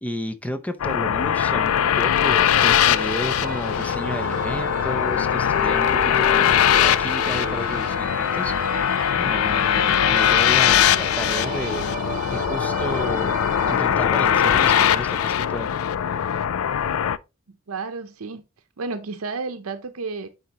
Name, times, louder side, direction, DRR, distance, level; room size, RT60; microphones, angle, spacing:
voice 1, 0.0-11.9 12.3-13.3 13.7-15.7, equal, 5° left, 0.6 m, -32 dB
sound 1, 0.8-17.2, left 9 dB, 80° left, 0.4 m, -21 dB
sound 2, 2.2-14.3, right 4 dB, 40° right, 0.6 m, -35 dB
voice 2, 17.5-18.4 18.8-20.3, right 4 dB, 80° right, 0.7 m, -32 dB
9.8 x 4.2 x 2.9 m
head